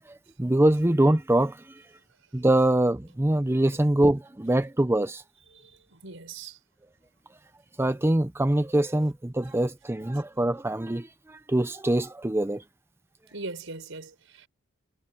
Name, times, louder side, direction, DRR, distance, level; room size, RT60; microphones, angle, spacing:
voice 1, 0.0-1.8 2.3-5.2 7.8-12.6, right 1 dB, 10° right, 0.6 m, -24 dB
voice 2, 5.5-6.6 13.3-14.5, right 3 dB, 75° right, 5.5 m, -40 dB
head